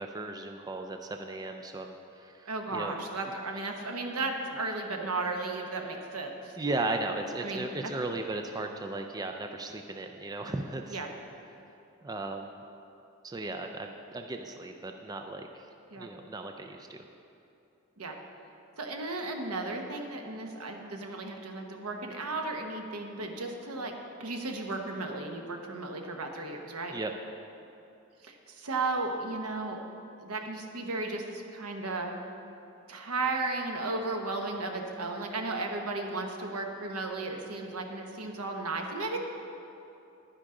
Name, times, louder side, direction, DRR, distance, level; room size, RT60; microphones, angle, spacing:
voice 1, 0.0-2.9 6.6-11.0 12.0-12.6 13.2-15.6 16.0-17.0 26.9-27.1, right 2 dB, 15° right, 4 dB, 0.3 m, -36 dB
voice 2, 2.5-6.8 7.4-7.9 10.9-11.1 15.9-16.1 18.0-18.2 18.8-23.9 24.2-26.9 28.2-29.8 30.2-32.1 32.9-39.2, right 3 dB, 80° right, 3 dB, 1.0 m, -35 dB
11.0 x 9.9 x 3.8 m, 2.8 s
head